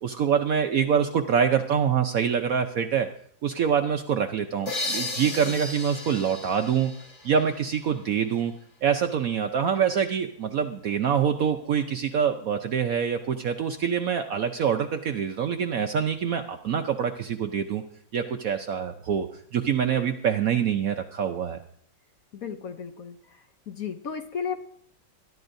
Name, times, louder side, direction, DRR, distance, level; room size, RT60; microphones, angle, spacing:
voice 1, 0.0-3.1 3.4-6.9 7.2-8.5 8.8-17.8 18.1-21.6, right 7 dB, 65° right, 7 dB, 0.9 m, -25 dB
sound 1, 4.7-8.2, left 2 dB, 40° left, 2.5 m, -35 dB
voice 2, 5.2-5.6 22.3-23.2 23.7-24.6, left 7 dB, 60° left, 7 dB, 1.0 m, -34 dB
21.5 x 11.5 x 2.6 m, 0.63 s
omnidirectional pair, 2.1 m